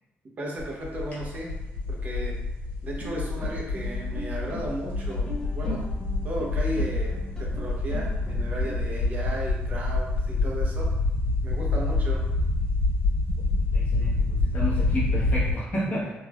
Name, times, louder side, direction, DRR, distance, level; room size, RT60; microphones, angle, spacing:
voice 1, 0.4-1.5 1.9-2.4 2.8-5.8 6.2-10.9 11.4-12.2, right 1 dB, 35° right, -2 dB, 0.6 m, -35 dB
sound 1, 0.6-15.5, left 2 dB, 60° left, 1.3 m, -27 dB
sound 2, 3.0-8.7, left 1 dB, 15° left, 0.5 m, -40 dB
voice 2, 13.7-16.1, left 1 dB, 35° left, -7 dB, 1.0 m, -31 dB
3.3 x 2.4 x 2.2 m, 0.98 s
cardioid pair, 150°, 4 cm